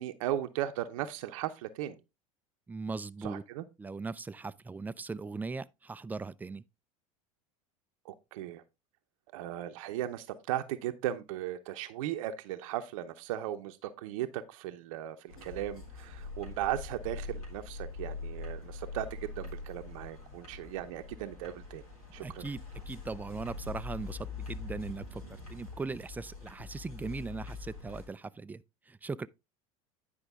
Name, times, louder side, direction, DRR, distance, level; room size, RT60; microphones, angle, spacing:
voice 1, 0.0-2.0 3.2-3.6 8.0-8.6 9.3-21.8 22.1-22.4, right 12 dB, 70° right, 0.7 m, -37 dB
voice 2, 2.7-3.4 3.8-6.6 22.2-29.3, right 4 dB, 10° right, 0.4 m, -39 dB
sound 1, 15.3-28.1, left 4 dB, 90° left, 3.7 m, -43 dB
9.9 x 5.1 x 3.5 m
hypercardioid pair, 85°, 18 cm